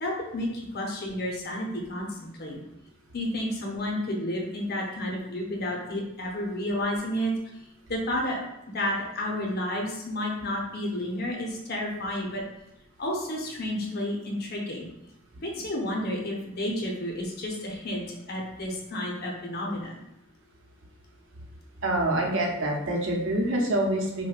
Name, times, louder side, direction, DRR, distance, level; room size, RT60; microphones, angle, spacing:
voice 1, 0.0-2.6 3.1-7.4 7.9-8.4 8.7-12.4 13.0-14.9 15.4-20.0, left 1 dB, 50° left, -1 dB, 0.7 m, -31 dB
voice 2, 21.8-24.3, right 1 dB, 70° right, 0 dB, 0.7 m, -26 dB
4.9 x 2.2 x 2.4 m, 0.86 s
head